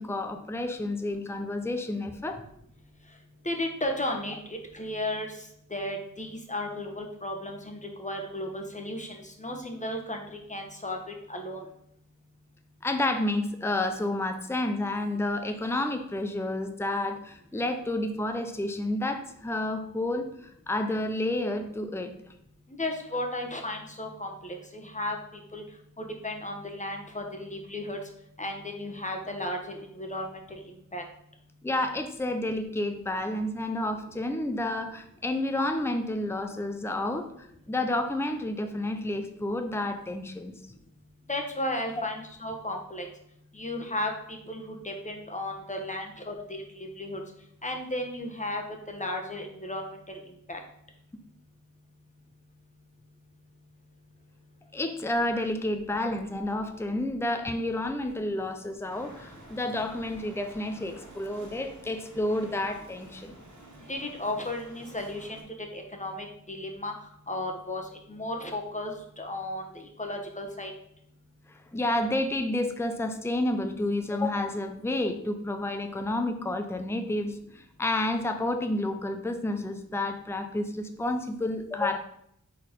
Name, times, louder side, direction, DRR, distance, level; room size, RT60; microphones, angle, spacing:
voice 1, 0.0-2.4 12.8-22.1 31.6-40.5 42.0-42.1 54.7-63.4 71.5-82.0, left 1 dB, 10° left, 6 dB, 0.6 m, -30 dB
voice 2, 3.4-5.3 5.7-11.6 22.7-25.2 25.5-25.6 26.0-28.0 28.4-30.4 30.9-31.0 41.3-43.1 43.5-47.2 47.6-50.2 50.5-50.6 63.9-65.4 65.7-66.9 67.3-70.7, left 1 dB, 25° left, 3 dB, 1.2 m, -34 dB
sound 1, 58.9-65.4, right 2 dB, 70° right, 1.7 m, -50 dB
4.4 x 4.2 x 5.2 m, 0.72 s
wide cardioid pair, 60°, 31 cm